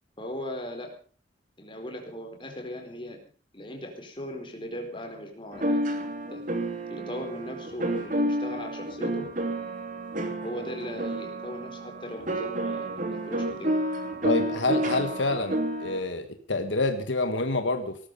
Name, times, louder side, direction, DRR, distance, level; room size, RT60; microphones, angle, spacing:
voice 1, 0.2-1.0 1.6-3.2 3.5-5.8 6.3-6.4 6.9-9.3 10.4-13.7, left 1 dB, 25° left, 3 dB, 4.4 m, -38 dB
sound 1, 5.5-16.0, right 1 dB, 45° right, 3.1 m, -30 dB
voice 2, 14.2-18.0, left 2 dB, 80° left, 7 dB, 1.6 m, -27 dB
18.5 x 13.5 x 5.4 m, 0.41 s
head